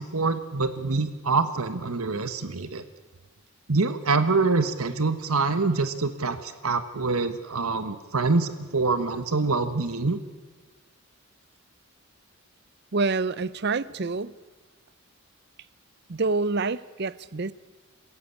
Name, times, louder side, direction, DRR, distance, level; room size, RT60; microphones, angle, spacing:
voice 1, 0.0-2.8 3.7-10.2, right 3 dB, 80° right, 11 dB, 1.3 m, -25 dB
voice 2, 12.9-14.4 16.1-17.5, right 3 dB, 50° right, 19 dB, 0.6 m, -27 dB
26.5 x 16.0 x 8.5 m, 1.3 s
head